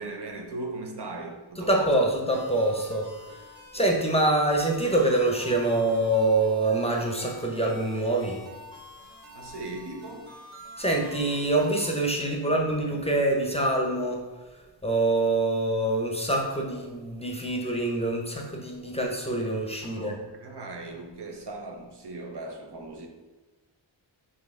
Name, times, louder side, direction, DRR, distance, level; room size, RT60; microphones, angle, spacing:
voice 1, 0.0-2.1 9.3-10.3 19.8-23.1, right 2 dB, 55° right, 3 dB, 0.7 m, -38 dB
voice 2, 1.7-3.1 3.7-8.4 10.8-14.2 14.8-20.1, right 2 dB, 15° left, 0 dB, 0.7 m, -25 dB
sound 1, 2.3-12.1, left 1 dB, 75° right, 1.5 m, -47 dB
4.1 x 3.0 x 3.6 m, 1.2 s
wide cardioid pair, 55°, 48 cm